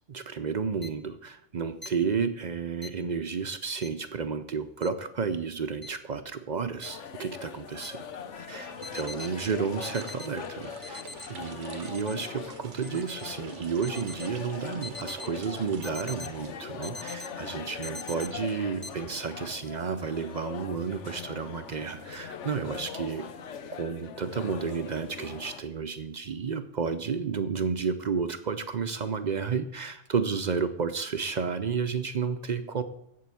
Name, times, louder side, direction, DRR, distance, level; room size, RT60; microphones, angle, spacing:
voice 1, 0.1-8.0 8.3-11.0 11.3-23.3 23.7-32.8, right 5 dB, 50° right, 10 dB, 0.6 m, -32 dB
sound 1, 0.8-0.9 1.8-1.9 2.8-2.9 3.8-3.9 4.8-4.9 5.8-5.9 6.8-6.9 7.8-7.9 8.8-9.3 9.8-10.3 10.8-11.3 11.8-12.3 12.8-13.3 13.8-14.3 14.8-15.3 15.8-16.3 16.8-17.3 17.8-18.3 18.8-18.9, left 2 dB, 15° left, 0.4 m, -41 dB
sound 2, 6.8-25.6, left 6 dB, 90° left, 1.2 m, -41 dB
sound 3, 8.7-17.1, right 7 dB, 85° right, 1.1 m, -48 dB
7.8 x 7.6 x 8.4 m, 0.75 s
omnidirectional pair, 1.2 m